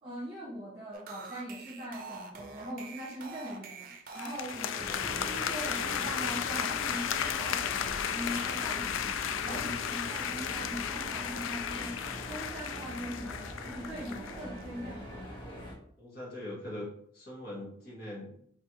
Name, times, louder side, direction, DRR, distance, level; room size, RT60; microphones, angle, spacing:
voice 1, 0.0-4.8 5.2-15.1, equal, 30° right, -6 dB, 1.3 m, -41 dB
sound 1, 0.9-6.0, right 4 dB, 45° right, 0.6 m, -46 dB
sound 2, 4.1-14.4, left 8 dB, 85° left, 0.3 m, -34 dB
voice 2, 4.7-5.1 9.3-9.6 16.0-16.9 17.1-18.3, left 1 dB, 50° left, -5 dB, 1.9 m, -42 dB
sound 3, 4.7-15.7, equal, 25° left, 1.5 m, -43 dB
4.5 x 3.4 x 3.1 m, 0.65 s
head